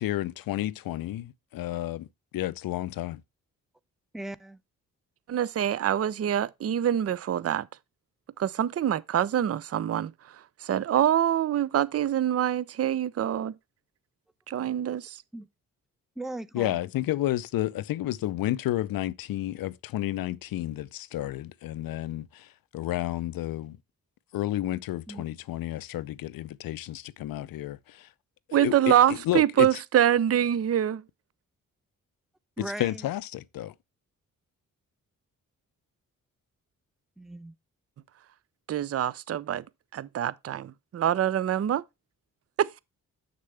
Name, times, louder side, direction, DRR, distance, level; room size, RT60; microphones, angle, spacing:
voice 1, 0.0-2.1 2.3-3.2 16.5-23.8 24.3-28.1 28.5-29.8 32.6-33.7, left 14 dB, 75° left, 0.6 m, -31 dB
voice 2, 4.1-4.6 15.3-15.5 16.2-16.8 25.1-25.2 32.6-33.1 37.2-37.5, right 1 dB, ahead, 0.7 m, -38 dB
voice 3, 5.3-7.7 8.4-10.1 10.6-13.6 14.5-15.2 28.5-31.0 38.7-39.6 39.9-41.8 42.6-42.8, right 10 dB, 45° right, 0.5 m, -25 dB
6.7 x 6.7 x 3.3 m
supercardioid pair, 50°, 35 cm